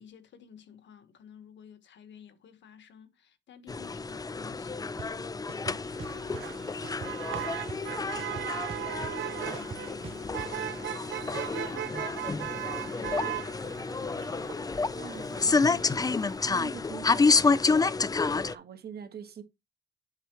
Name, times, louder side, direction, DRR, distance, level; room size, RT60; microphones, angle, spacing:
voice 1, 0.0-7.6 8.0-11.1 12.8-13.5 13.9-14.4 14.9-15.6 16.7-17.0, left 8 dB, 65° left, 1.5 m, -53 dB
sound 1, 3.7-18.5, left 4 dB, 20° left, 0.5 m, -29 dB
sound 2, 5.0-5.1 5.5-6.4 6.8-7.9 8.2-10.5, right 6 dB, 30° right, 0.6 m, -42 dB
Motor vehicle (road), 5.9-16.4, right 13 dB, 75° right, 0.6 m, -38 dB
voice 2, 12.7-13.5 14.9-19.4, right 7 dB, 55° right, 1.6 m, -46 dB
8.2 x 5.9 x 3.1 m
cardioid pair, 90°, 20 cm